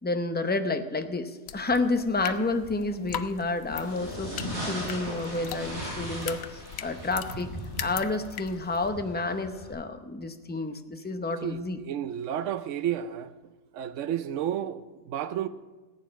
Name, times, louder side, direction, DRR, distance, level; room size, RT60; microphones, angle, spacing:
voice 1, 0.0-7.5 7.8-11.8, left 3 dB, 10° left, 0.5 m, -30 dB
sound 1, 1.5-8.9, left 10 dB, 65° left, 0.8 m, -41 dB
sound 2, 3.7-9.7, equal, 70° right, 6.1 m, -38 dB
voice 2, 11.4-13.3 13.7-15.5, right 10 dB, 85° right, 1.0 m, -31 dB
15.0 x 9.0 x 6.2 m
omnidirectional pair, 1.2 m